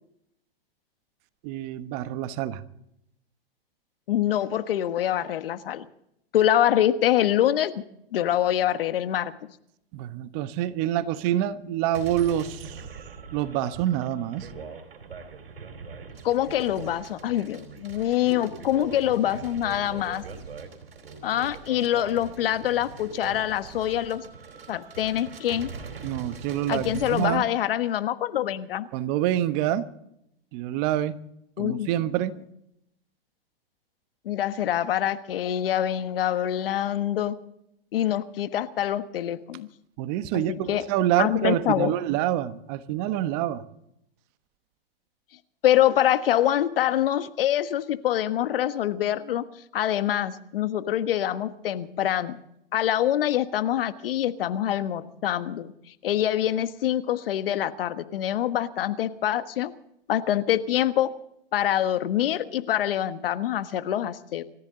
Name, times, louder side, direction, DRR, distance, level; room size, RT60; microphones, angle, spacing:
voice 1, 1.4-2.6 9.9-12.8 13.3-14.5 26.0-27.4 28.9-29.9 30.5-31.2 31.6-32.3 40.0-43.6, right 12 dB, 45° right, 12 dB, 1.3 m, -26 dB
voice 2, 4.1-5.8 6.3-7.7 8.1-9.3 16.2-20.2 21.2-24.2 24.7-25.7 26.7-28.9 31.6-31.9 34.2-37.3 37.9-39.7 40.3-40.8 41.2-41.9 45.6-49.4 49.7-52.4 52.7-55.7 56.0-59.7 60.1-61.1 61.5-64.4, left 11 dB, 70° left, 11 dB, 1.4 m, -25 dB
sound 1, 11.9-27.4, right 5 dB, 90° right, 4.1 m, -41 dB
26.0 x 14.5 x 3.9 m, 0.78 s
hypercardioid pair, 120°, 29 cm